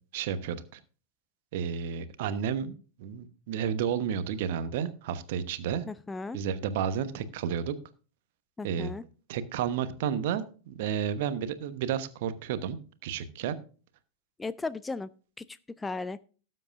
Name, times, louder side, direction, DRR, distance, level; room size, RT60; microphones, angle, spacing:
voice 1, 0.1-0.8 1.5-5.8 6.3-7.7 8.6-8.9 9.3-13.6, right 8 dB, 50° right, 13 dB, 1.0 m, -31 dB
voice 2, 5.9-6.4 8.6-9.0 14.4-15.1 15.4-16.2, left 3 dB, 10° left, 16 dB, 0.4 m, -36 dB
18.0 x 7.7 x 2.5 m, 0.38 s
figure-of-eight pair, 90°, 0 cm